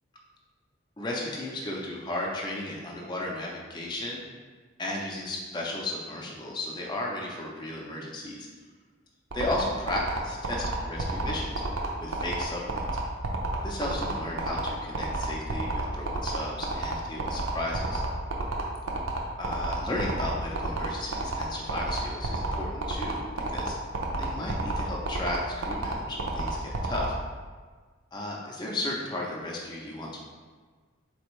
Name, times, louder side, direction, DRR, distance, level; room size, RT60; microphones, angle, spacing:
voice 1, 1.0-4.2 4.8-8.5 9.3-11.6 12.0-12.9 13.6-18.0 19.4-23.7 24.2-25.4 25.7-27.1 28.1-30.2, left 1 dB, 20° left, -3 dB, 0.5 m, -34 dB
sound 1, 9.3-27.1, right 2 dB, 80° right, 0.6 m, -30 dB
4.3 x 3.3 x 3.1 m, 1.5 s
head